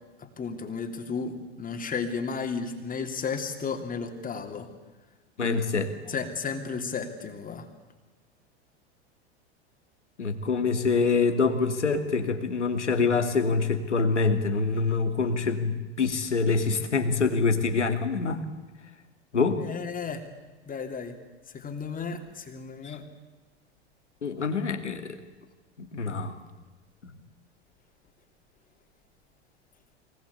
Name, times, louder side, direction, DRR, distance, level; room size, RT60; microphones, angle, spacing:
voice 1, 0.2-4.7 5.4-5.6 6.1-7.7 19.6-20.2 20.7-21.1 21.5-23.0, left 5 dB, 25° left, 4 dB, 3.1 m, -33 dB
voice 2, 5.4-5.9 10.2-18.4 19.3-19.6 22.8-23.0 24.2-25.2 25.8-26.4, left 4 dB, 90° left, 7 dB, 2.6 m, -25 dB
24.0 x 20.0 x 8.4 m, 1.2 s
hypercardioid pair, 95°, 34 cm